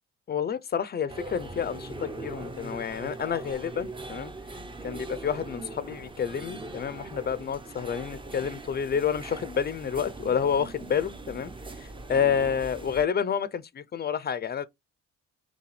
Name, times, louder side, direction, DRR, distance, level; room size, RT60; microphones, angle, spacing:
voice 1, 0.3-4.3 4.8-11.5 11.8-14.7, left 7 dB, 35° left, 0.4 m, -29 dB
sound 1, 1.1-13.0, right 2 dB, 15° right, 0.6 m, -41 dB
5.7 x 2.2 x 3.1 m
cardioid pair, 90°, 30 cm